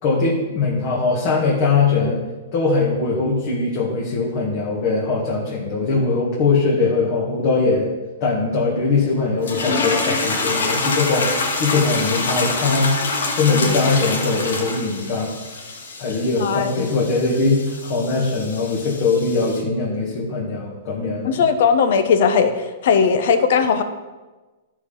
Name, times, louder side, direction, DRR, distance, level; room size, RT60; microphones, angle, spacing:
voice 1, 0.0-2.2 2.5-7.9 8.2-11.3 11.6-13.0 13.4-15.3 16.0-21.4, left 3 dB, 35° left, -4 dB, 1.8 m, -21 dB
sound 1, 9.4-19.6, left 3 dB, 90° left, 2.2 m, -26 dB
voice 2, 16.4-16.9 21.2-23.8, left 6 dB, 55° left, 9 dB, 1.0 m, -18 dB
12.5 x 5.2 x 5.7 m, 1.2 s
hypercardioid pair, 170°, 0 cm